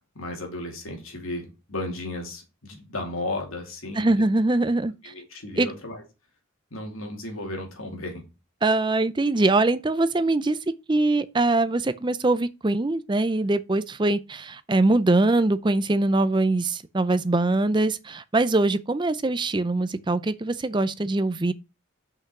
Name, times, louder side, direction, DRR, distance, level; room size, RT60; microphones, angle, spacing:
voice 1, 0.1-4.2 5.0-6.0 6.7-8.2, left 2 dB, 80° left, 2.7 m, -34 dB
voice 2, 4.0-5.1 5.6-5.7 8.6-10.6 10.9-21.5, right 2 dB, 20° right, 0.4 m, -23 dB
5.9 x 5.6 x 6.0 m
head